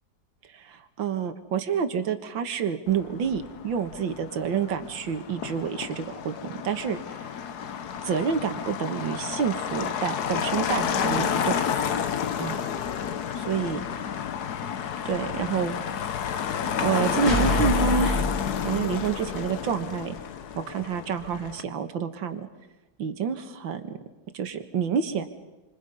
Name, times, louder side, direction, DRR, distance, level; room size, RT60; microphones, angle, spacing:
voice 1, 0.5-7.3 8.0-11.6 12.4-12.7 13.4-13.8 14.7-16.1 16.8-18.4 18.6-20.2 20.6-22.5 23.0-24.0 24.3-25.3, right 6 dB, 70° right, 8 dB, 2.2 m, -28 dB
Motor vehicle (road), 2.9-21.6, left 8 dB, 60° left, 1.3 m, -30 dB
sound 1, 16.4-19.6, right 1 dB, 30° left, 4.4 m, -29 dB
28.5 x 26.0 x 5.5 m, 1.1 s
omnidirectional pair, 2.2 m